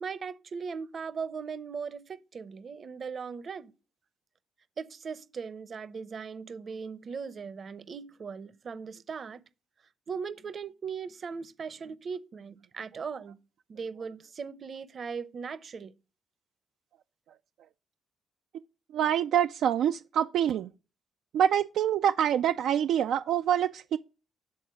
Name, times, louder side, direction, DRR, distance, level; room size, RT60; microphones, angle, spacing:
voice 1, 0.0-3.7 4.8-9.4 10.1-13.4 13.7-15.9, right 5 dB, 45° right, 0.7 m, -38 dB
voice 2, 18.9-20.7 21.3-24.0, right 9 dB, 75° right, 0.3 m, -26 dB
8.5 x 3.9 x 6.0 m
cardioid pair, 90°, 0 cm